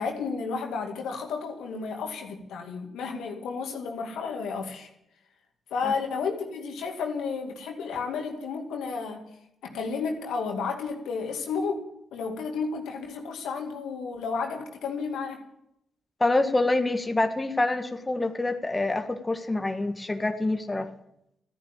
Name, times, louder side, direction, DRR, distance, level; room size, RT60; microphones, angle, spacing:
voice 1, 0.0-4.9 5.7-9.3 9.6-15.4, left 5 dB, 75° left, 2 dB, 2.2 m, -32 dB
voice 2, 16.2-20.9, left 2 dB, 25° left, 6 dB, 1.5 m, -26 dB
14.0 x 10.0 x 8.9 m, 0.80 s
hypercardioid pair, 40°, 0 cm